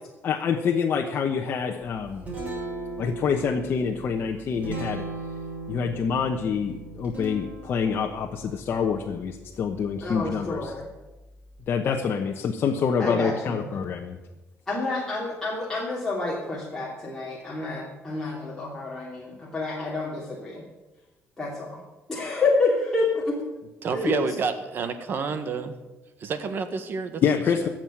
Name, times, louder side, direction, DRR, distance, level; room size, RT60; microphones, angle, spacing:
voice 1, 0.2-2.3 3.0-5.0 5.7-10.7 11.7-14.2 27.2-27.7, left 6 dB, 50° left, 1 dB, 1.1 m, -26 dB
Guitar, 1.8-11.6, right 2 dB, 30° right, 6.4 m, -39 dB
voice 2, 10.0-10.8 13.0-13.6 14.7-20.6 21.4-21.7 22.1-23.4 23.9-24.2, left 3 dB, 10° left, -5 dB, 3.0 m, -28 dB
voice 3, 23.8-25.7 26.2-27.2 27.6-27.7, right 5 dB, 50° right, 9 dB, 1.5 m, -29 dB
14.0 x 7.6 x 8.8 m, 1.1 s
cardioid pair, 140°, 5 cm